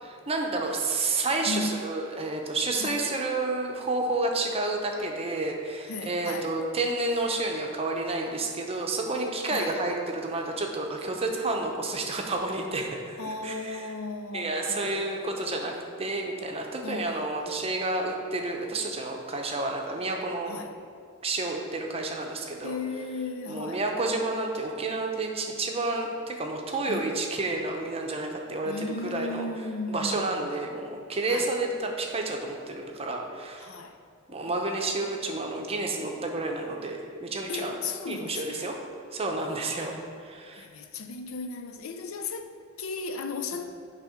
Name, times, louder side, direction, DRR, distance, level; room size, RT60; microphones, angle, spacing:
voice 1, 0.3-13.9 14.3-15.7 16.0-20.6 21.2-22.8 23.5-29.5 29.9-33.7 34.3-37.8 38.1-38.8 39.1-40.7, right 2 dB, 30° right, 2 dB, 0.7 m, -30 dB
voice 2, 1.5-1.8 2.8-3.0 5.9-6.5 9.5-9.8 13.2-15.7 16.8-17.8 20.5-20.7 22.6-23.8 26.9-27.1 28.6-30.5 31.3-31.5 33.6-34.0 34.3-34.5 37.5-38.7 39.5-40.0 40.5-43.6, left 3 dB, 80° left, 7 dB, 0.5 m, -36 dB
8.2 x 3.4 x 5.0 m, 2.3 s
head